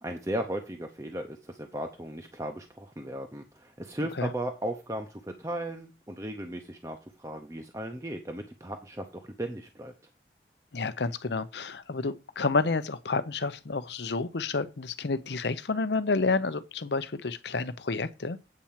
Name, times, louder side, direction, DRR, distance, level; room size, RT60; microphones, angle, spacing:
voice 1, 0.0-9.9, right 1 dB, 15° right, 0.7 m, -36 dB
voice 2, 10.7-18.4, left 3 dB, 75° left, 0.7 m, -30 dB
8.6 x 4.4 x 7.3 m
head